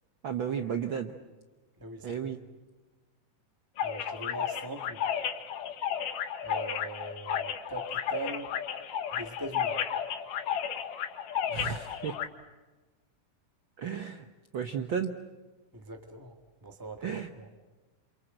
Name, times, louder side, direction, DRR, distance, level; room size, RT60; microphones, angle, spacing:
voice 1, 0.2-1.1 2.0-2.4 11.5-12.1 13.8-14.3 14.5-15.1 17.0-17.3, right 7 dB, 90° right, 7 dB, 1.0 m, -33 dB
voice 2, 1.8-2.1 3.8-5.0 6.4-8.5 9.1-9.8 15.7-16.4 16.6-17.5, right 2 dB, 10° right, 4 dB, 1.3 m, -41 dB
sound 1, 3.8-12.3, left 8 dB, 85° left, 3.0 m, -33 dB
28.0 x 27.0 x 7.8 m, 1.2 s
omnidirectional pair, 3.6 m